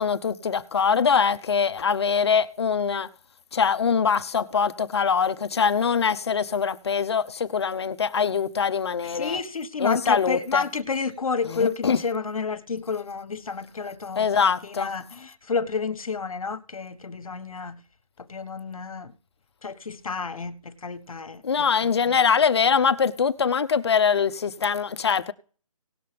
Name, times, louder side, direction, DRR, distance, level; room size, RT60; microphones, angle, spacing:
voice 1, 0.0-3.1 3.5-9.4 9.8-10.6 11.5-12.0 14.2-14.9 21.4-25.3, left 6 dB, 50° left, 0.9 m, -23 dB
voice 2, 9.0-17.8 18.2-19.1 19.6-21.4 21.8-22.2, left 5 dB, 75° left, 1.6 m, -30 dB
19.0 x 6.7 x 3.4 m
hypercardioid pair, 165°, 18 cm